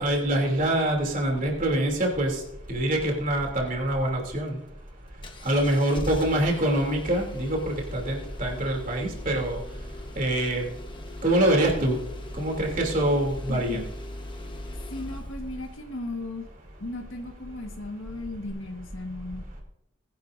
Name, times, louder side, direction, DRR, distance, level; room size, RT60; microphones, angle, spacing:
voice 1, 0.0-2.4 2.7-4.6 5.4-9.6 10.2-10.6 11.2-12.0 12.4-13.8, right 1 dB, 40° right, 1 dB, 3.0 m, -25 dB
Engine starting, 5.2-15.8 18.5-18.6, left 1 dB, 25° left, 1.1 m, -39 dB
voice 2, 13.5-13.9 14.9-16.5 16.8-19.6, left 2 dB, 80° left, 3 dB, 1.5 m, -36 dB
20.0 x 11.0 x 2.6 m, 0.80 s
head